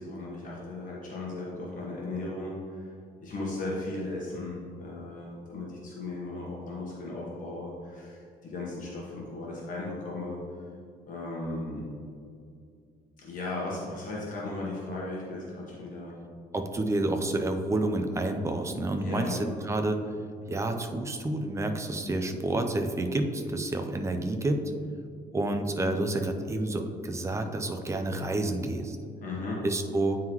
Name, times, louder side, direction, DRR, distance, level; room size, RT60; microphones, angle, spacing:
voice 1, 0.0-2.9 3.2-10.4 11.1-11.8 13.2-16.2 19.0-19.4 29.2-29.6, left 2 dB, 50° left, -4 dB, 1.2 m, -36 dB
voice 2, 16.5-19.4 19.6-20.0 20.5-24.6 25.3-29.0 29.6-30.2, right 2 dB, 15° right, 5 dB, 0.5 m, -29 dB
9.3 x 3.8 x 3.0 m, 2.3 s
cardioid pair, 110°, 17 cm